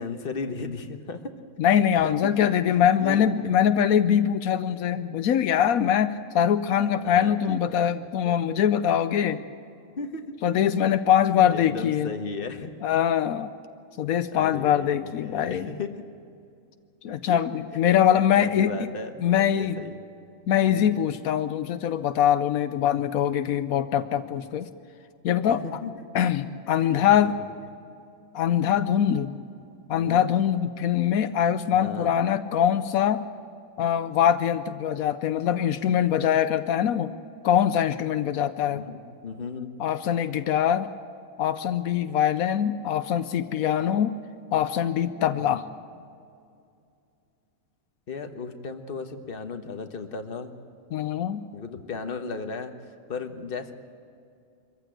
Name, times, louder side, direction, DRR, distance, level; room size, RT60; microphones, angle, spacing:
voice 1, 0.0-1.3 2.0-2.3 2.8-3.2 7.0-7.9 8.2-8.4 10.0-10.3 11.3-12.7 14.3-16.0 17.1-17.4 18.3-20.0 20.6-20.9 24.1-24.2 25.5-26.1 27.0-27.4 30.0-30.2 31.7-32.1 38.7-39.7 45.4-45.6 48.1-50.5 51.5-52.7 53.1-53.7, left 4 dB, 40° left, 7 dB, 1.4 m, -35 dB
voice 2, 1.6-9.4 10.4-12.1 12.8-13.5 14.0-15.7 17.0-18.7 19.2-19.8 20.5-24.7 25.2-25.6 26.1-27.3 28.3-29.3 29.9-33.2 33.8-37.1 37.4-38.8 39.8-40.9 41.4-44.2 44.5-45.6 50.9-51.4, left 9 dB, 80° left, 11 dB, 1.1 m, -23 dB
23.5 x 15.0 x 9.1 m, 2.5 s
omnidirectional pair, 1.5 m